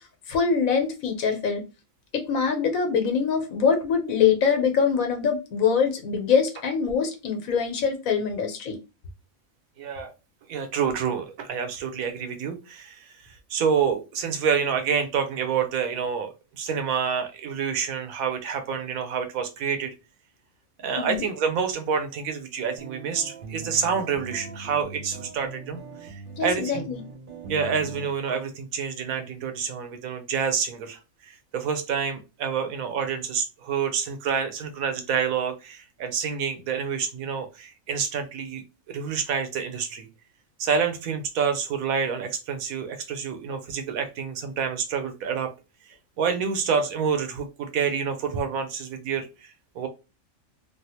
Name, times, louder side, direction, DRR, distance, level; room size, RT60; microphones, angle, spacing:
voice 1, 0.3-1.6 2.1-8.8 20.9-21.2 26.4-27.0, left 6 dB, 85° left, 5 dB, 1.3 m, -24 dB
voice 2, 9.8-10.1 10.5-19.9 20.8-26.9 27.5-40.1 40.6-45.5 46.2-49.9, right 6 dB, 90° right, 7 dB, 1.2 m, -28 dB
sound 1, 22.8-28.1, right 3 dB, 45° right, 0.8 m, -40 dB
3.3 x 2.4 x 2.7 m, 0.28 s
omnidirectional pair, 1.4 m